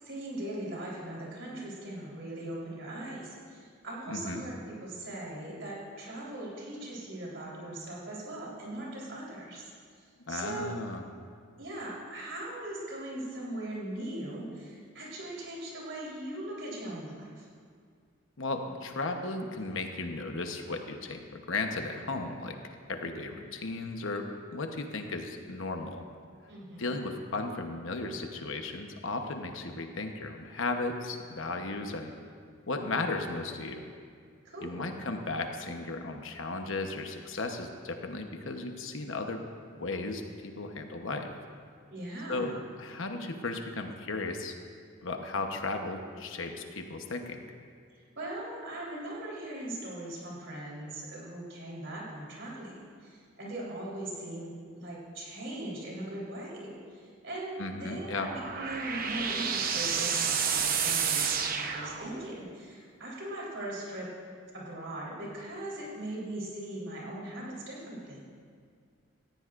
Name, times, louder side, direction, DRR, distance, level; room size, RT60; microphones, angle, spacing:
voice 1, 0.0-9.6 10.0-10.7 11.6-17.5 26.5-27.0 34.4-34.8 41.9-42.6 48.1-64.1 64.5-68.2, right 1 dB, 60° right, -5 dB, 3.8 m, -40 dB
voice 2, 4.1-4.4 10.3-11.0 18.4-21.2 21.5-22.6 22.9-26.1 26.8-32.1 32.7-33.9 34.6-39.4 39.8-41.3 42.3-42.5 42.8-44.6 45.0-47.5 57.6-58.3, left 3 dB, 70° left, 4 dB, 1.0 m, -35 dB
sound 1, 57.9-62.5, right 6 dB, 40° right, 0.8 m, -30 dB
18.0 x 15.0 x 2.5 m, 2.2 s
head